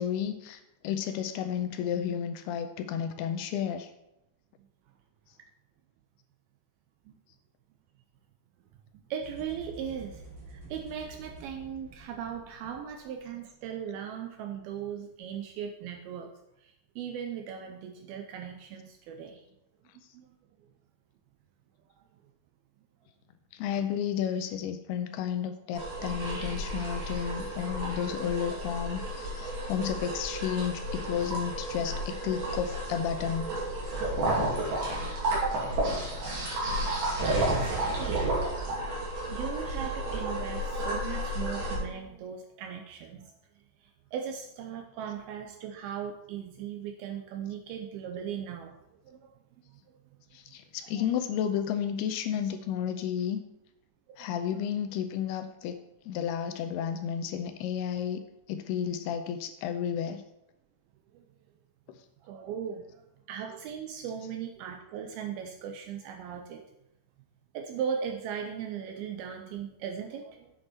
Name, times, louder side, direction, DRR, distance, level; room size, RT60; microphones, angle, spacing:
voice 1, 0.0-3.9 23.5-33.5 50.3-53.4 54.2-55.8 56.1-58.2 58.5-60.2, left 8 dB, 85° left, 7 dB, 2.3 m, -32 dB
voice 2, 8.9-19.4 20.1-20.4 35.3-36.2 37.3-38.3 39.3-43.3 43.8-48.8 49.0-49.4 49.7-50.0 54.1-54.7 61.1-61.2 62.2-63.0 63.3-66.6 67.5-70.5, right 8 dB, 90° right, 5 dB, 2.1 m, -38 dB
sound 1, 9.2-13.5, right 2 dB, 35° right, 3.9 m, -49 dB
sound 2, 25.7-41.8, right 1 dB, 60° right, 4.3 m, -32 dB
8.0 x 8.0 x 4.3 m, 0.87 s
omnidirectional pair, 5.0 m